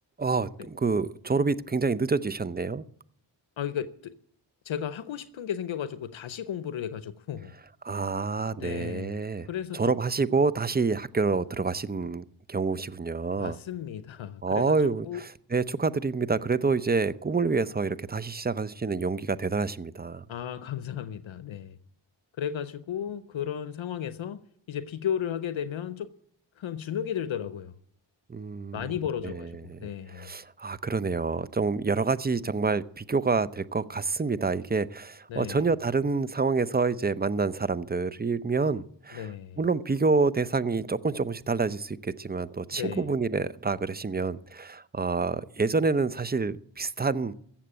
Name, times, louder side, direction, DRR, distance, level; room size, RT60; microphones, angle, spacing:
voice 1, 0.2-2.8 7.8-9.5 9.7-13.6 14.4-20.2 28.3-28.9 29.2-29.8 30.1-39.3 39.6-47.3, right 4 dB, 20° right, 0.7 m, -27 dB
voice 2, 3.6-4.1 4.6-7.5 8.5-9.8 13.4-15.2 20.3-21.8 22.4-24.4 24.7-26.1 26.6-27.7 28.7-30.3 35.3-35.7 39.1-39.6 42.7-43.1, left 9 dB, 70° left, 0.8 m, -34 dB
15.5 x 7.5 x 8.8 m
cardioid pair, 50°, 48 cm